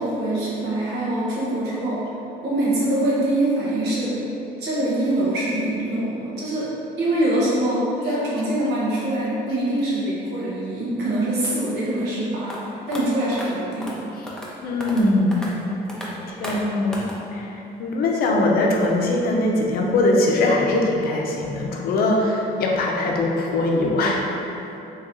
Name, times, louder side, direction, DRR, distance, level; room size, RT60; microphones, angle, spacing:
voice 1, 0.0-2.0 2.4-4.2 4.6-6.7 7.0-13.9, right 1 dB, 80° right, -7 dB, 1.1 m, -24 dB
sound 1, 12.5-12.6 12.9-13.0 13.3-13.5 13.8-14.0 14.3-14.5 14.8-15.1 15.3-15.5 15.9-16.1 16.4-16.6 16.9-17.2, equal, 5° left, 0.6 m, -33 dB
voice 2, 14.6-15.9 16.3-24.3, left 2 dB, 65° left, -1 dB, 0.6 m, -22 dB
3.1 x 2.9 x 3.7 m, 2.9 s
cardioid pair, 110°, 17 cm